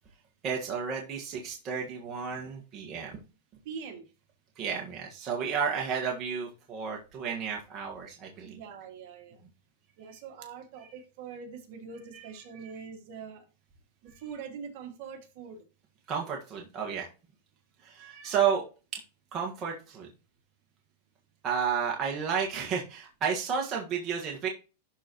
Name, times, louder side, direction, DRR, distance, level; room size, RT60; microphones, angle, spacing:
voice 1, 0.4-3.2 4.6-8.6 10.0-10.2 10.8-10.9 12.1-12.3 12.6-12.7 16.1-17.1 17.8-18.6 18.9-19.0 19.3-20.1 21.4-24.5, right 7 dB, 30° right, -1 dB, 1.7 m, -32 dB
voice 2, 3.7-4.0 8.4-9.4 10.0-13.4 14.2-15.6 18.4-18.6, right 6 dB, 55° right, 3 dB, 2.2 m, -43 dB
12.0 x 4.1 x 3.1 m, 0.31 s
supercardioid pair, 135°, 0 cm